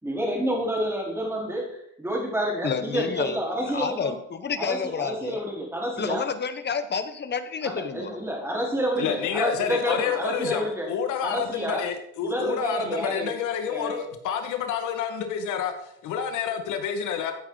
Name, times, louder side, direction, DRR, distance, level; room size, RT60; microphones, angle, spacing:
voice 1, 0.0-4.1 4.6-6.3 7.6-10.9 11.2-11.8 12.2-13.3 13.7-14.0, equal, 10° right, 4.5 m, -29 dB
voice 2, 2.6-3.4 3.7-5.4 6.0-8.1, left 6 dB, 35° left, 1.3 m, -29 dB
voice 3, 9.0-17.3, left 7 dB, 75° left, 2.0 m, -29 dB
15.0 x 8.5 x 4.1 m
cardioid pair, 110°, 30 cm